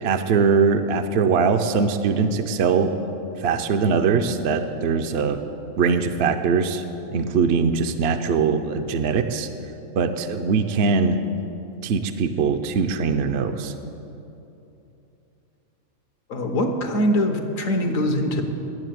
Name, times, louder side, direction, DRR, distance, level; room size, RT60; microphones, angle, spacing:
voice 1, 0.0-3.1 3.4-5.4 5.8-6.8 7.1-9.5 10.0-11.2 11.8-13.7, right 5 dB, 60° right, 7 dB, 0.7 m, -21 dB
voice 2, 16.3-18.4, equal, 70° left, 5 dB, 1.4 m, -22 dB
10.5 x 7.4 x 9.2 m, 2.9 s
omnidirectional pair, 1.4 m